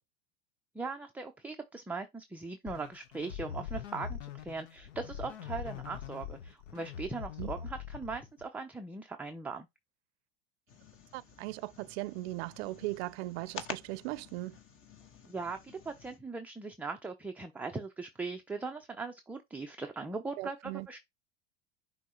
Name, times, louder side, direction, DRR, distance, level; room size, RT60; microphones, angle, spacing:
voice 1, 0.7-9.7 15.3-21.0, right 3 dB, 5° right, 0.4 m, -40 dB
sound 1, 2.7-8.5, left 8 dB, 80° left, 0.9 m, -42 dB
sound 2, 10.7-16.2, left 5 dB, 35° left, 1.1 m, -48 dB
voice 2, 11.1-14.6 20.4-20.9, right 20 dB, 60° right, 0.5 m, -38 dB
5.9 x 2.1 x 4.2 m
hypercardioid pair, 110°, 37 cm